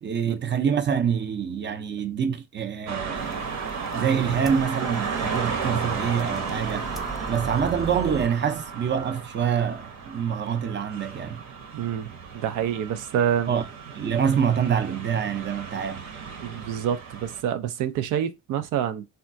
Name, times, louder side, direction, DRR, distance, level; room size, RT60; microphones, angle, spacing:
voice 1, 0.0-3.5 3.9-6.9 7.3-11.4 13.5-13.7 13.9-16.0, right 7 dB, 35° right, 0.6 m, -26 dB
sound 1, 2.9-17.4, right 5 dB, 65° right, 0.9 m, -34 dB
sound 2, 3.2-8.3, right 2 dB, ahead, 0.7 m, -38 dB
voice 2, 11.7-13.5 16.4-19.1, right 9 dB, 85° right, 0.5 m, -27 dB
3.5 x 2.3 x 2.5 m
cardioid pair, 90°, 30 cm